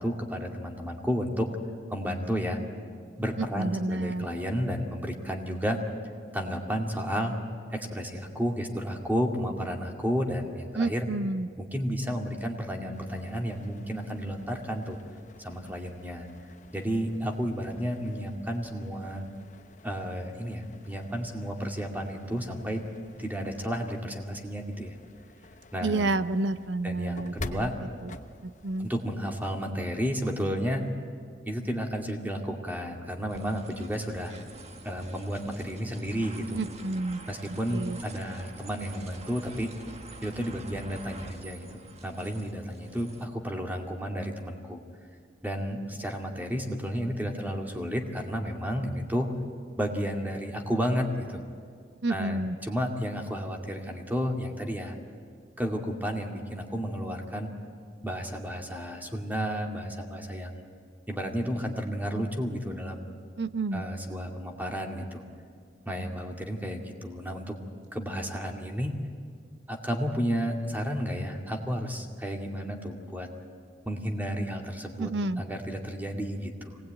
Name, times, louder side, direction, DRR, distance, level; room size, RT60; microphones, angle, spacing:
voice 1, 0.0-1.5 1.9-2.6 3.2-5.8 6.3-7.3 7.7-11.1 11.6-15.0 15.4-16.3 16.7-19.2 19.8-22.8 23.2-24.9 25.7-26.1 26.8-27.7 28.8-30.8 31.5-34.4 34.8-36.6 37.3-39.7 40.2-41.7 42.0-44.8 45.4-49.3 49.8-51.4 52.1-54.9 55.6-57.5 58.0-60.5 61.1-63.1 63.7-65.2 65.9-67.5 67.9-68.9 69.7-73.3 73.8-75.1 75.4-76.8, equal, 10° right, 2 dB, 2.2 m, -32 dB
voice 2, 3.4-4.3 10.7-11.5 25.8-27.7 28.0-28.2 28.4-28.9 36.6-37.2 37.7-38.0 52.0-52.6 63.4-63.8 75.0-75.4, right 2 dB, 85° right, 12 dB, 0.7 m, -30 dB
sound 1, 12.9-29.2, left 2 dB, 45° left, 0.9 m, -48 dB
sound 2, 33.3-43.2, right 2 dB, 40° right, 1.3 m, -47 dB
25.0 x 19.0 x 9.0 m, 2.1 s
head